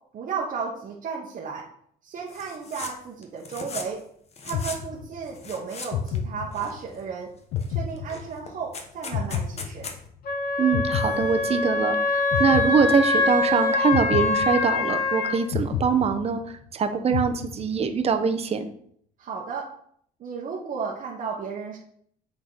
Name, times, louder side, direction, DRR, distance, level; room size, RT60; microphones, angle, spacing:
voice 1, 0.1-1.7 2.0-4.1 4.4-7.3 7.7-9.9 19.2-19.7 20.2-21.8, right 5 dB, 55° right, -3 dB, 1.2 m, -33 dB
sound 1, 2.3-2.9 3.2-4.0 4.3-4.8 5.3-6.2 6.5-7.1 7.6-7.7 8.0-10.0, left 4 dB, 40° left, 1.2 m, -38 dB
sound 2, 4.5-5.4 5.9-7.0 7.5-8.7 9.1-10.3 10.7-11.9 12.3-13.4 13.9-15.1 15.5-16.7 17.1-18.0, left 7 dB, 80° left, 0.7 m, -31 dB
Wind instrument woodwind instrument, 10.2-15.4, left 3 dB, 60° left, 2.0 m, -24 dB
voice 2, 10.6-16.4 16.7-18.7, right 6 dB, 35° right, 8 dB, 0.9 m, -23 dB
8.5 x 4.0 x 4.0 m, 0.64 s
cardioid pair, 110°, 17 cm